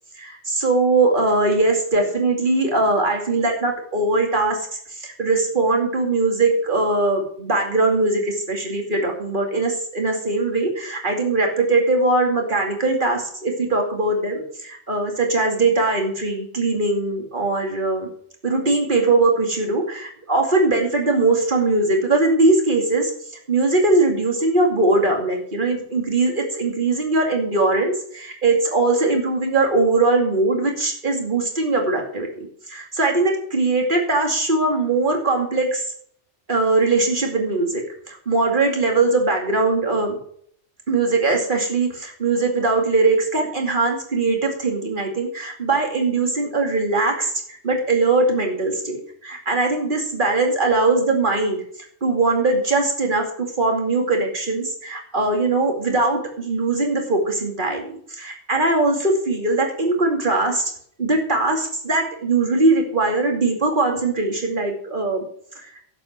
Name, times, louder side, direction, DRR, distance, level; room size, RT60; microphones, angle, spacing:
voice 1, 0.1-18.1 18.4-23.1 23.5-35.8 36.5-40.2 40.9-47.3 47.6-51.6 52.0-60.6 61.0-65.2 65.6-65.7, right 3 dB, 45° right, 2 dB, 2.6 m, -21 dB
11.5 x 8.3 x 6.1 m, 0.65 s
omnidirectional pair, 1.2 m